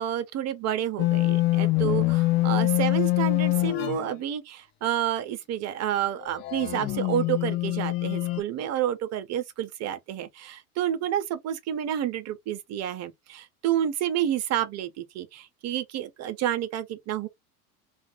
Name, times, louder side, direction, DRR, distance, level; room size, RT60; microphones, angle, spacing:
voice 1, 0.0-17.3, right 10 dB, 35° right, 0.7 m, -29 dB
sound 1, 1.0-4.1 6.4-8.4, left 19 dB, 25° left, 0.3 m, -24 dB
2.4 x 2.4 x 2.9 m
figure-of-eight pair, 80°, 45 cm